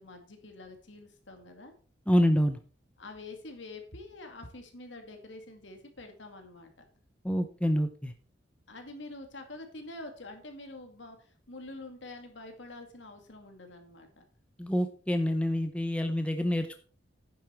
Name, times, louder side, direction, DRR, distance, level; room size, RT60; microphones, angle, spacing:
voice 1, 0.0-1.7 3.0-6.8 8.7-14.2, left 2 dB, 70° left, 5 dB, 2.2 m, -46 dB
voice 2, 2.1-2.6 7.2-8.1 14.6-16.8, equal, 5° left, 7 dB, 0.7 m, -27 dB
9.8 x 7.3 x 4.5 m, 0.41 s
head